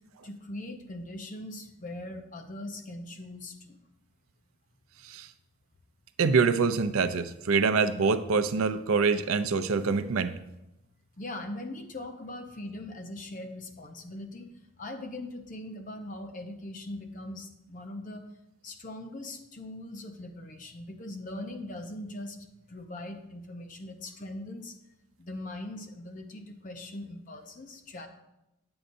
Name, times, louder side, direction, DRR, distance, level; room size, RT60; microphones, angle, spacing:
voice 1, 0.2-3.8 11.2-18.2 18.6-24.8 25.2-28.1, left 1 dB, 40° left, 5 dB, 0.8 m, -41 dB
voice 2, 6.2-10.4, right 5 dB, 85° right, 11 dB, 0.5 m, -25 dB
9.7 x 7.8 x 2.6 m, 0.91 s
head